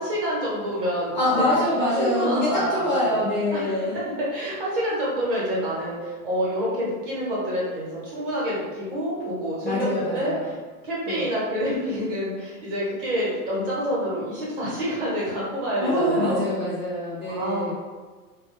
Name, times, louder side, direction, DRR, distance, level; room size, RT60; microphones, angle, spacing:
voice 1, 0.0-1.6 2.0-3.2 3.5-10.6 10.8-16.5 17.2-17.7, equal, 35° right, -6 dB, 0.9 m, -27 dB
voice 2, 1.1-4.0 9.6-10.5 11.1-11.2 15.8-17.7, left 1 dB, 30° left, -8 dB, 0.4 m, -24 dB
2.7 x 2.3 x 3.2 m, 1.4 s
supercardioid pair, 175°, 45 cm